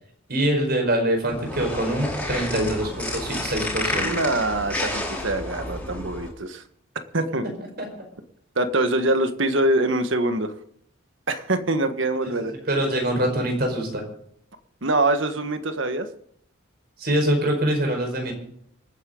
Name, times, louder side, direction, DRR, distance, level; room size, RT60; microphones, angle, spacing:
voice 1, 0.3-4.1 7.8-8.1 12.2-12.3 12.7-14.0 17.0-18.3, right 1 dB, 45° right, 3 dB, 5.0 m, -24 dB
sound 1, 1.3-6.3, left 1 dB, 5° left, 4.5 m, -30 dB
voice 2, 4.0-6.6 7.1-7.5 8.5-10.5 11.3-12.5 14.8-16.1, right 2 dB, 65° right, 9 dB, 1.6 m, -24 dB
26.0 x 9.9 x 3.9 m, 0.71 s
head